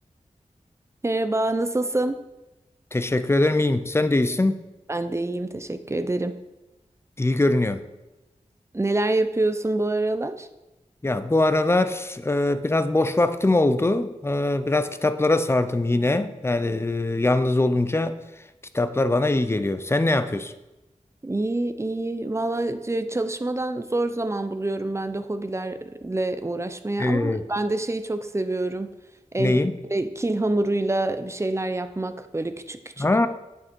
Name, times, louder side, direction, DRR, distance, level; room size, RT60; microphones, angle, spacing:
voice 1, 1.0-2.2 4.9-6.3 8.7-10.5 21.2-28.9 29.3-29.6 29.9-33.1, right 2 dB, 20° right, 10 dB, 0.6 m, -26 dB
voice 2, 2.9-4.6 7.2-7.8 11.0-18.2 18.7-20.5 27.0-27.4 29.4-29.7 33.0-33.3, left 2 dB, 20° left, 11 dB, 0.6 m, -22 dB
8.6 x 6.6 x 4.6 m, 1.0 s
wide cardioid pair, 65°, 13 cm